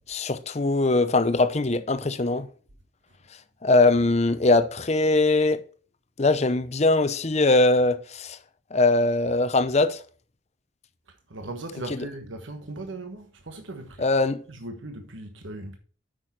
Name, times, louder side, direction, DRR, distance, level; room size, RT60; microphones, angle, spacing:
voice 1, 0.1-2.5 3.6-5.6 6.2-8.4 8.7-10.0 14.0-14.4, left 2 dB, 35° left, 0.7 m, -21 dB
voice 2, 11.1-14.1 14.5-15.8, right 2 dB, 75° right, 1.3 m, -38 dB
8.9 x 6.3 x 4.2 m
head